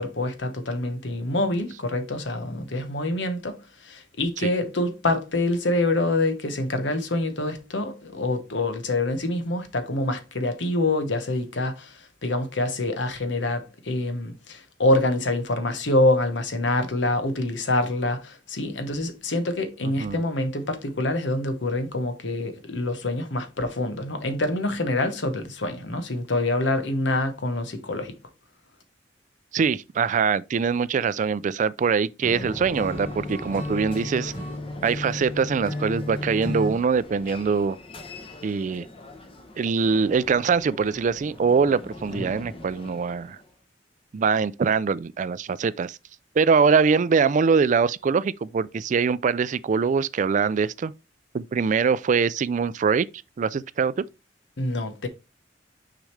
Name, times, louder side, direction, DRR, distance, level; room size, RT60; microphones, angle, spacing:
voice 1, 0.0-3.6 3.8-28.2 54.6-55.1, left 2 dB, 85° left, 1.2 m, -26 dB
voice 2, 19.8-20.2 29.5-34.3 34.8-37.8 38.4-38.9 39.6-43.4 44.1-46.0 46.4-50.9 51.3-53.1 53.4-54.1, right 5 dB, 45° right, 0.3 m, -23 dB
sound 1, 32.2-43.5, left 1 dB, 30° left, 0.9 m, -41 dB
Acoustic guitar / Strum, 32.7-36.8, left 2 dB, 50° left, 3.2 m, -33 dB
6.3 x 4.9 x 3.2 m
head